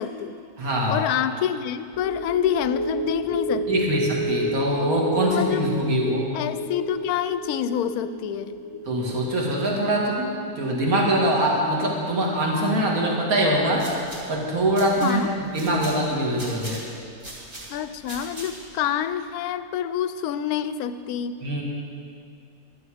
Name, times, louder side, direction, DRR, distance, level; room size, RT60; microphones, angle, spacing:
voice 1, 0.0-0.4 0.9-3.9 5.3-5.7 6.3-8.6 15.0-15.3 17.7-21.4, left 10 dB, 70° left, 12 dB, 1.0 m, -27 dB
voice 2, 0.6-1.0 3.7-6.3 8.9-13.9 14.3-15.2 15.5-16.8 21.4-21.6, right 1 dB, 55° right, -2 dB, 2.4 m, -23 dB
sound 1, 1.9-12.5 12.9-13.0, equal, 25° left, 0.5 m, -31 dB
sound 2, 13.6-18.8, right 1 dB, 30° right, 2.2 m, -41 dB
14.5 x 12.0 x 4.9 m, 2.4 s
omnidirectional pair, 1.8 m